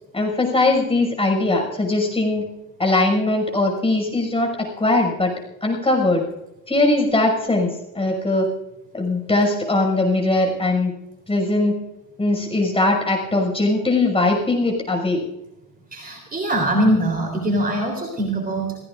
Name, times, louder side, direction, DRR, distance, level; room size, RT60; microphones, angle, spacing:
voice 1, 0.1-2.5 2.8-5.3 5.6-6.2 6.7-8.5 8.9-10.9 11.3-11.7 12.2-15.2, left 2 dB, 10° left, 1 dB, 6.1 m, -20 dB
voice 2, 15.9-18.8, right 1 dB, 20° right, 1 dB, 3.6 m, -22 dB
28.5 x 16.0 x 2.6 m, 0.95 s
figure-of-eight pair, 80°, 48 cm